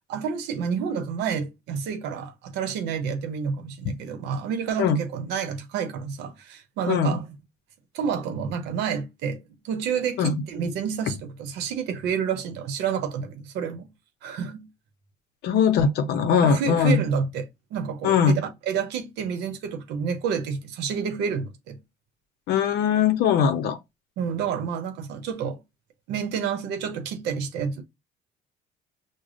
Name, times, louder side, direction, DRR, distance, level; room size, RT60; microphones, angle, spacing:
voice 1, 0.1-7.4 7.9-9.4 9.6-13.9 14.2-14.7 16.4-21.8 24.2-25.6 26.1-27.8, right 7 dB, 85° right, 0.7 m, -29 dB
voice 2, 6.9-7.2 10.2-10.3 15.4-17.0 18.0-18.4 22.5-23.8, left 6 dB, 75° left, 0.6 m, -20 dB
4.9 x 2.1 x 2.5 m
cardioid pair, 110°, 17 cm